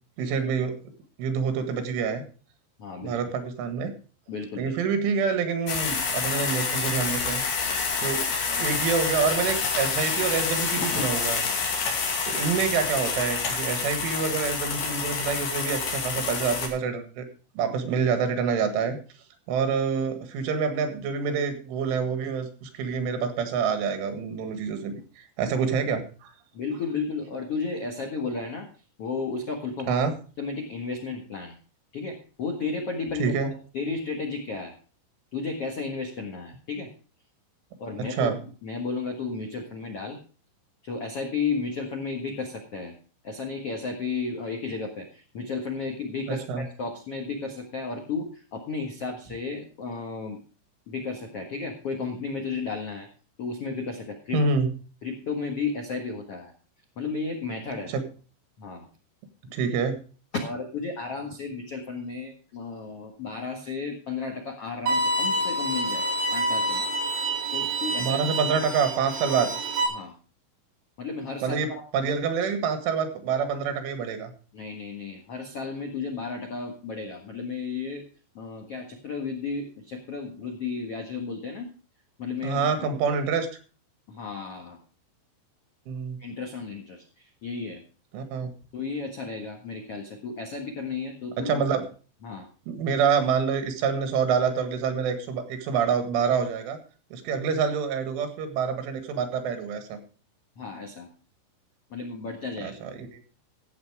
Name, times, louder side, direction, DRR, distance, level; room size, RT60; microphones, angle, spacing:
voice 1, 0.2-0.8 1.2-2.2 3.0-3.9 4.6-7.4 8.0-11.4 12.3-17.3 17.6-19.0 19.5-26.3 29.9-30.1 33.2-33.5 38.0-38.4 46.3-46.7 54.3-54.7 57.9-58.0 59.5-60.0 68.0-69.5 71.4-74.3 82.4-83.5 85.9-86.2 88.1-88.5 91.4-91.9 92.7-96.8 97.1-100.0 102.6-103.2, right 6 dB, 80° right, 8 dB, 4.1 m, -27 dB
voice 2, 2.8-3.1 4.3-4.7 8.2-8.3 10.7-11.1 26.5-28.7 29.0-29.9 30.4-31.5 31.9-34.7 35.3-36.9 37.8-38.3 38.6-40.2 40.8-42.9 43.2-50.4 50.9-53.1 53.4-54.4 55.0-56.5 57.0-57.9 58.6-58.9 59.4-59.5 60.3-66.9 67.5-68.2 69.9-70.1 71.0-71.8 74.5-78.0 78.3-81.7 82.2-82.7 84.1-84.8 86.2-87.8 88.7-91.6 92.2-92.5 100.6-101.1 101.9-102.8, left 4 dB, 75° left, 2 dB, 1.3 m, -33 dB
sound 1, 5.7-16.7, left 5 dB, 60° left, 4.0 m, -28 dB
Bowed string instrument, 64.9-69.9, right 1 dB, 40° right, 3.1 m, -27 dB
14.5 x 8.1 x 4.8 m, 0.38 s
omnidirectional pair, 5.6 m